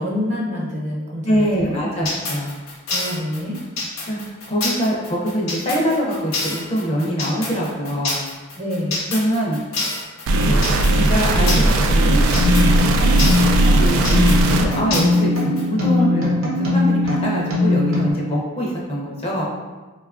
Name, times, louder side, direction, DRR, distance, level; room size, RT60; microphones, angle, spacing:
voice 1, 0.0-2.2 2.9-3.6 8.6-9.0, left 1 dB, 35° right, -4 dB, 0.7 m, -27 dB
voice 2, 1.2-2.5 4.1-4.2 4.5-8.2 9.1-9.6 10.4-10.6 10.9-12.2 13.7-14.2 14.5-19.4, equal, 30° left, -4 dB, 0.5 m, -23 dB
sound 1, 2.1-15.6, left 3 dB, 85° left, 0.7 m, -27 dB
sound 2, 10.3-14.7, right 2 dB, 90° right, 0.3 m, -17 dB
sound 3, 12.4-18.1, left 2 dB, 70° right, 0.8 m, -20 dB
3.6 x 2.3 x 2.4 m, 1.2 s
head